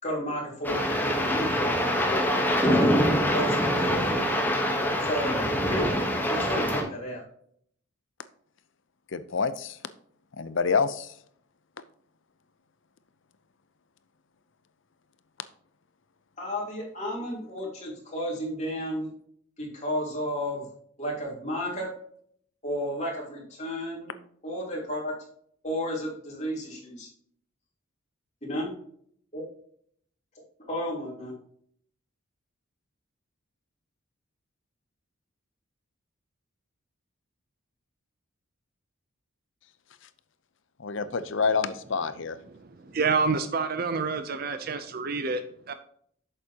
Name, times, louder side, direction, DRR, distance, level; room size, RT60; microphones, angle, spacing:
voice 1, 0.0-2.3 2.6-3.0 3.3-4.2 5.0-5.4 5.7-5.9 6.3-7.2 16.4-19.1 19.6-20.6 21.0-21.9 22.6-24.1 24.4-25.1 25.6-27.1 28.4-28.7 29.3-29.4 30.7-31.3, equal, 30° left, -4 dB, 3.2 m, -32 dB
sound 1, 0.6-6.8, equal, 10° left, 1.1 m, -25 dB
voice 2, 9.1-9.8 10.4-11.1 40.8-42.4, left 5 dB, 60° left, 13 dB, 0.6 m, -27 dB
voice 3, 42.5-45.7, right 4 dB, 45° right, 10 dB, 0.5 m, -28 dB
8.4 x 6.9 x 2.8 m, 0.63 s
head